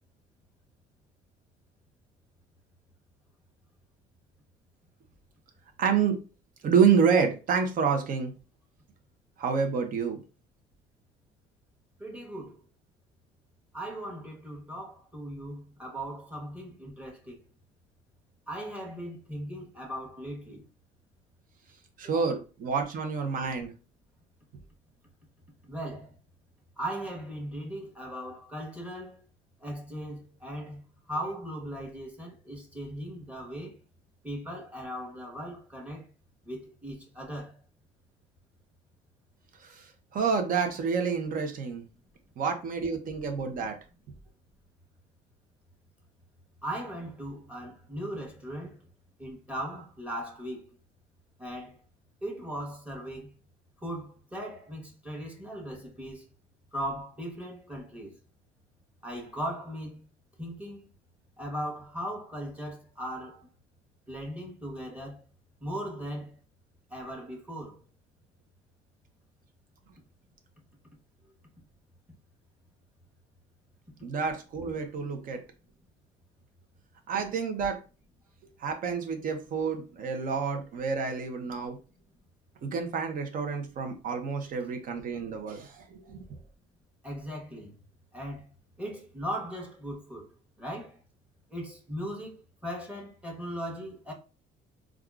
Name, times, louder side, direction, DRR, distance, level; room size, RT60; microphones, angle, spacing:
voice 1, 5.8-6.2 6.6-8.3 9.4-10.2 22.0-23.7 39.6-41.8 42.4-43.8 74.0-75.4 77.1-77.8 78.6-81.8 82.6-86.2, right 6 dB, 55° right, 0.8 m, -28 dB
voice 2, 12.0-12.6 13.7-17.4 18.5-20.7 22.1-22.2 25.7-26.1 26.8-29.2 29.6-30.8 31.1-33.8 34.2-36.0 36.4-37.6 46.6-48.8 49.2-50.7 51.4-51.8 52.2-53.3 53.8-56.2 56.7-58.2 59.0-60.1 60.4-60.9 61.4-63.5 64.1-65.2 65.6-66.3 66.9-67.8 87.0-87.7 88.1-88.5 88.8-90.3 90.6-91.0 91.5-94.1, equal, 10° right, 1.0 m, -38 dB
3.5 x 2.4 x 2.4 m
cardioid pair, 110°, 17 cm